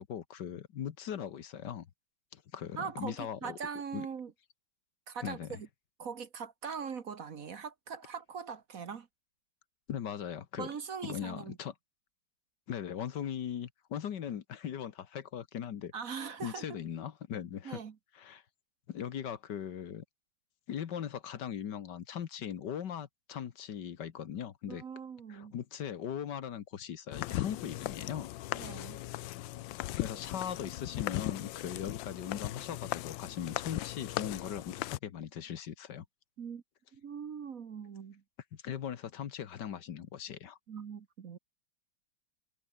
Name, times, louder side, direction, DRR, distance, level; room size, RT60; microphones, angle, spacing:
voice 1, 0.0-1.9 2.3-3.6 3.9-4.1 5.2-5.6 9.9-10.7 11.0-11.7 12.7-15.9 16.4-17.8 18.2-18.4 18.9-20.0 20.7-24.8 25.3-28.3 30.0-36.1 38.5-40.6, left 9 dB, 65° left, 1.8 m, -39 dB
voice 2, 2.8-4.3 5.1-5.7 6.0-9.1 10.6-11.6 15.9-16.8 17.6-17.9 24.6-25.5 28.5-29.0 36.4-36.6 36.9-38.2 40.7-41.4, right 6 dB, 50° right, 1.5 m, -41 dB
sound 1, 27.1-35.0, left 16 dB, 85° left, 1.4 m, -38 dB
omnidirectional pair, 2.0 m